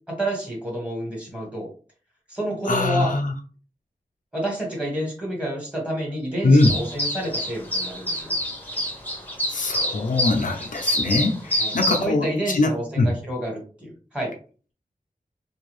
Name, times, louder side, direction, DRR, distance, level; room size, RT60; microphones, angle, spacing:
voice 1, 0.1-1.7 2.3-3.1 4.3-8.3 11.6-14.3, right 1 dB, 10° right, -3 dB, 1.6 m, -29 dB
voice 2, 2.7-3.3 6.4-6.7 9.5-13.1, left 2 dB, 65° left, 2 dB, 0.5 m, -22 dB
sound 1, 6.6-12.1, equal, 10° left, 0.9 m, -27 dB
2.6 x 2.3 x 3.1 m, 0.38 s
wide cardioid pair, 90°, 15 cm